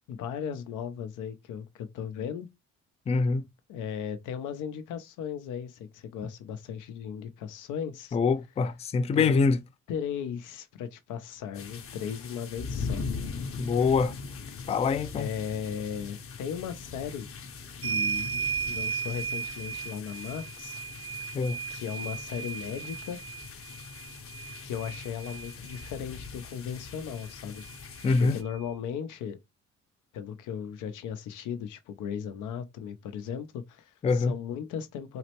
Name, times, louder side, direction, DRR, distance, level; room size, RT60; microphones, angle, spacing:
voice 1, 0.1-2.5 3.7-8.2 9.1-9.4 9.9-13.0 14.6-14.7 15.1-17.3 17.8-20.8 21.7-23.2 24.6-27.6 27.9-29.4 30.1-35.2, left 8 dB, 90° left, 0.6 m, -36 dB
voice 2, 3.1-3.4 8.1-9.6 13.6-14.1 14.7-15.3 21.3-21.6 28.0-28.4 34.0-34.3, left 4 dB, 20° left, 0.3 m, -24 dB
sound 1, 11.5-28.4, left 5 dB, 45° left, 0.7 m, -41 dB
sound 2, 17.8-25.9 27.2-27.3 27.6-28.7, right 6 dB, 50° right, 0.4 m, -36 dB
4.0 x 2.1 x 2.9 m
cardioid pair, 90°, 30 cm